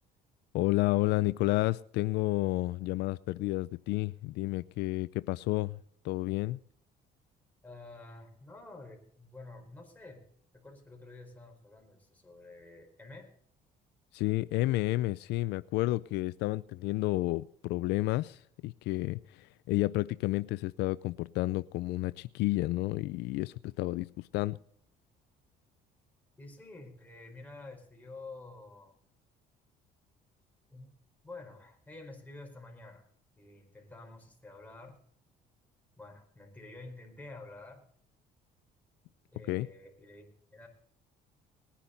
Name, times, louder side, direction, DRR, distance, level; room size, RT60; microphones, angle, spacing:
voice 1, 0.5-5.8 6.0-6.6 14.1-24.1 24.3-24.6 39.5-39.7, left 19 dB, 85° left, 16 dB, 0.4 m, -31 dB
voice 2, 7.6-10.2 10.5-13.3 26.4-28.9 30.7-30.9 31.2-33.1 33.4-35.0 36.0-37.9 39.3-40.7, left 2 dB, 10° left, 0 dB, 4.7 m, -49 dB
20.0 x 10.0 x 4.0 m, 0.62 s
cardioid pair, 110°, 17 cm